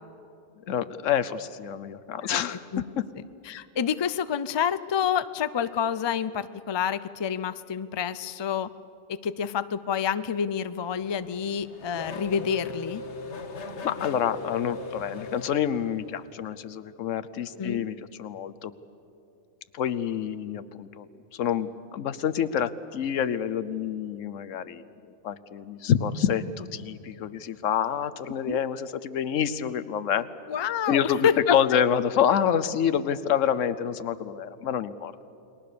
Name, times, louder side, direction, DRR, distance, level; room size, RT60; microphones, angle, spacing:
voice 1, 0.7-2.6 3.0-3.1 13.8-18.7 19.7-21.1 21.3-24.8 25.2-30.3 30.9-35.3, left 9 dB, 85° left, 15 dB, 1.1 m, -27 dB
voice 2, 3.5-8.7 9.1-13.0 17.5-17.8 28.5-28.6 30.5-31.6, left 8 dB, 40° left, 14 dB, 0.4 m, -28 dB
Race car auto racing / Accelerating revving vroom, 10.7-16.3, left 3 dB, 65° left, 1.5 m, -39 dB
29.5 x 20.5 x 6.9 m, 2.7 s
omnidirectional pair, 1.3 m